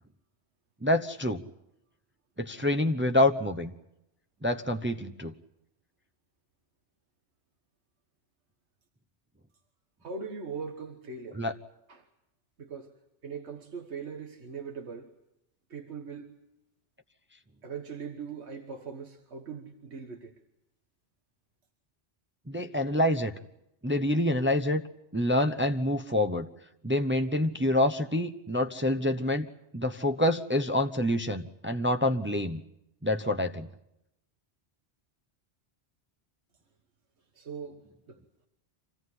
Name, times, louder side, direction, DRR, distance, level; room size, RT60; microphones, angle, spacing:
voice 1, 0.8-1.4 2.4-3.7 4.4-5.3 11.4-11.5 22.5-23.3 23.8-24.8 25.1-26.5 26.8-29.5 29.7-32.6 33.0-33.7, left 1 dB, 10° right, 0.8 m, -27 dB
voice 2, 10.0-11.4 11.9-12.1 12.6-12.9 13.2-15.1 15.7-16.3 17.6-20.4 37.3-38.2, right 5 dB, 90° right, 1.7 m, -40 dB
26.0 x 16.5 x 9.8 m
omnidirectional pair, 1.1 m